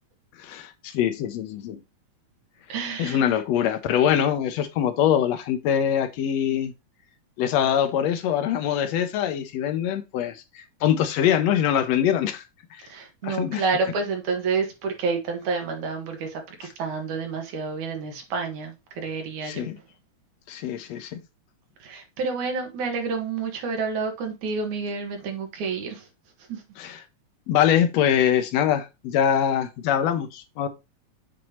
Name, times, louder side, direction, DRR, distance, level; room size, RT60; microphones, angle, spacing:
voice 1, 0.4-1.8 3.0-6.7 7.4-12.4 12.7-12.8 13.2-13.6 19.4-19.8 20.5-21.2 26.8-27.0 27.5-30.7, left 9 dB, 75° left, 1.8 m, -23 dB
voice 2, 2.7-3.2 12.8-19.7 21.8-26.1 26.5-26.6, right 4 dB, 90° right, 3.1 m, -29 dB
7.8 x 5.1 x 2.9 m
omnidirectional pair, 3.3 m